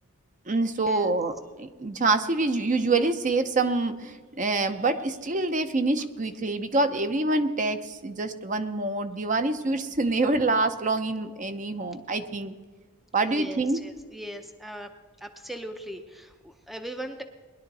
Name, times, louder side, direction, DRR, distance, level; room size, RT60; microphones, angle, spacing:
voice 1, 0.5-1.3 1.6-12.5 13.1-13.8, right 3 dB, 35° right, 9 dB, 0.7 m, -26 dB
voice 2, 13.3-14.9 15.2-17.2, right 1 dB, ahead, 6 dB, 0.6 m, -39 dB
20.0 x 11.0 x 4.1 m, 1.4 s
head